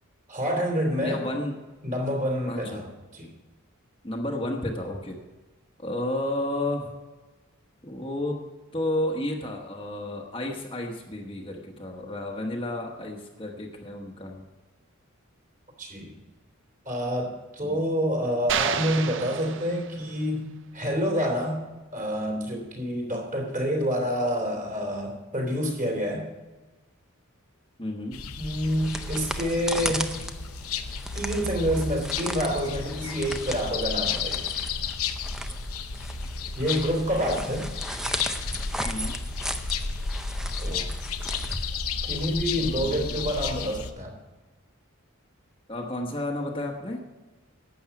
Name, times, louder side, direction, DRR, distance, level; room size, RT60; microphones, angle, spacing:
voice 1, 0.3-1.2 1.8-2.9 3.1-3.3 15.8-16.1 16.8-20.5 20.7-21.6 21.9-26.3 28.4-30.1 31.1-34.5 36.6-37.7 40.6-40.9 42.0-44.1, equal, 35° right, 0 dB, 3.1 m, -27 dB
voice 2, 1.0-1.6 2.5-2.8 4.0-5.2 5.8-6.9 7.8-8.4 8.7-14.5 17.6-17.8 27.8-28.3 38.8-39.2 42.5-43.3 45.7-47.0, left 1 dB, 25° left, 0 dB, 1.1 m, -32 dB
sound 1, 18.5-20.2, right 8 dB, 55° right, 0.6 m, -30 dB
sound 2, 28.1-43.9, left 5 dB, 80° left, 0.8 m, -33 dB
sound 3, 28.5-42.3, equal, 5° right, 0.5 m, -36 dB
11.5 x 8.4 x 5.9 m, 1.2 s
head